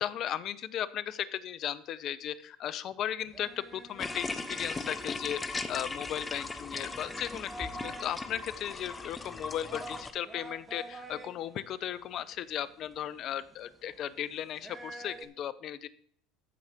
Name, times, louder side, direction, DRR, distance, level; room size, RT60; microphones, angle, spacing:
voice 1, 0.0-15.9, left 10 dB, 50° left, 17 dB, 0.7 m, -36 dB
sound 1, 3.2-15.2, right 2 dB, 20° right, 1.6 m, -49 dB
sound 2, 4.0-10.1, left 3 dB, 15° left, 0.9 m, -38 dB
14.5 x 5.0 x 5.8 m, 0.62 s
supercardioid pair, 100°, 0 cm